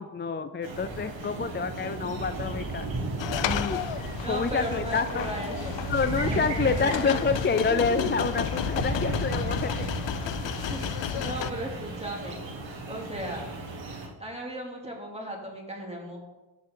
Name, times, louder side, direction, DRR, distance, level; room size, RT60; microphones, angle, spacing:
voice 1, 0.0-2.9 3.4-3.9 4.3-5.3 5.9-9.9, left 5 dB, 25° left, 11 dB, 0.4 m, -28 dB
sound 1, 0.6-14.1, right 2 dB, 75° right, 1.9 m, -35 dB
sound 2, 1.4-9.2, right 4 dB, 55° right, 1.3 m, -41 dB
sound 3, 3.2-11.5, left 11 dB, 70° left, 0.6 m, -33 dB
voice 2, 4.2-5.7 6.2-7.3 7.7-8.2 10.7-10.8 11.2-12.4 12.9-13.5 14.2-16.2, equal, 15° right, -1 dB, 3.0 m, -36 dB
14.5 x 5.7 x 3.9 m, 1.1 s
cardioid pair, 55°, 46 cm